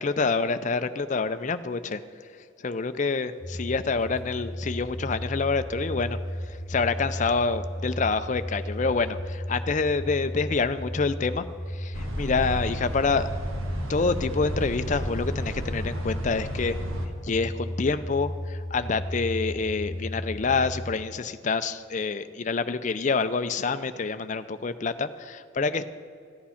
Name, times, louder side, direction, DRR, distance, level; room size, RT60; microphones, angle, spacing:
voice 1, 0.0-2.0 2.6-6.2 6.5-13.3 13.9-16.8 17.2-25.9, left 4 dB, 35° left, 11 dB, 0.4 m, -27 dB
sound 1, 3.4-20.9, equal, ahead, 1.8 m, -35 dB
sound 2, 11.9-17.1, equal, 80° right, 1.4 m, -34 dB
14.0 x 8.6 x 5.7 m, 2.3 s
head